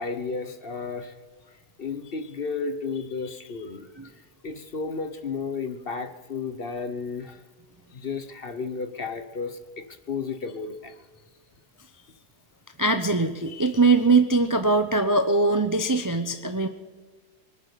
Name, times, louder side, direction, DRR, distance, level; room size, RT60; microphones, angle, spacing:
voice 1, 0.0-1.4 1.8-3.9 4.4-7.4 7.9-10.9, left 4 dB, 40° left, 9 dB, 1.0 m, -33 dB
voice 2, 12.8-16.7, right 3 dB, 25° right, 7 dB, 0.4 m, -21 dB
23.5 x 8.7 x 6.8 m, 1.4 s
omnidirectional pair, 1.8 m